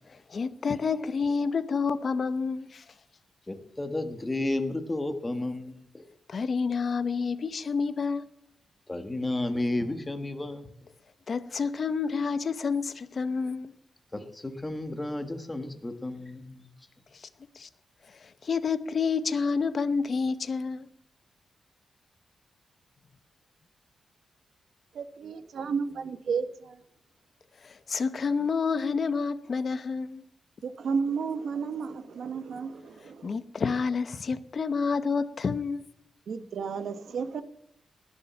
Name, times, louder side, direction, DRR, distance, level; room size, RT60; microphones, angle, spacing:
voice 1, 0.3-2.8 6.3-8.3 11.3-13.7 17.6-17.7 18.4-20.9 27.6-30.2 33.2-35.8, left 5 dB, 40° left, 0.8 m, -29 dB
voice 2, 3.5-6.1 8.9-10.7 14.1-16.7, left 2 dB, 15° left, 1.3 m, -32 dB
voice 3, 24.9-26.8 30.6-33.3 36.3-37.4, right 5 dB, 65° right, 1.1 m, -32 dB
19.5 x 7.2 x 7.0 m
wide cardioid pair, 170°, 0 cm